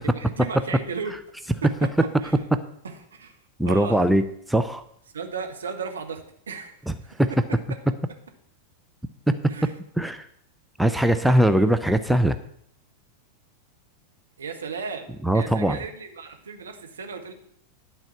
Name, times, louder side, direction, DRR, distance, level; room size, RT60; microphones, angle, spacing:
voice 1, 0.0-1.2 1.6-1.9 2.2-2.4 2.8-3.4 3.7-4.1 5.1-7.4 9.5-9.7 14.4-17.3, right 5 dB, 70° right, 4 dB, 1.4 m, -35 dB
voice 2, 3.6-4.2 4.5-4.8 7.2-7.3 9.3-9.4 10.0-10.3 10.8-12.3 15.2-15.8, right 1 dB, ahead, 9 dB, 0.5 m, -20 dB
11.5 x 4.4 x 6.9 m, 0.70 s
figure-of-eight pair, 90°, 0 cm